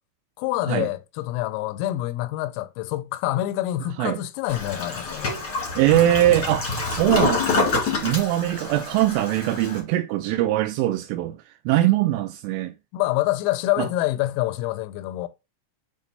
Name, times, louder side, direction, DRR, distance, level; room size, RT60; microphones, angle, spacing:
voice 1, 0.4-5.4 12.9-15.3, left 15 dB, 90° left, 3.4 m, -26 dB
Toilet flush, 4.5-9.8, left 4 dB, 50° left, 1.2 m, -27 dB
voice 2, 5.8-11.4 11.7-12.7 13.8-13.9, right 14 dB, 85° right, 2.9 m, -22 dB
8.4 x 2.9 x 4.2 m
omnidirectional pair, 5.9 m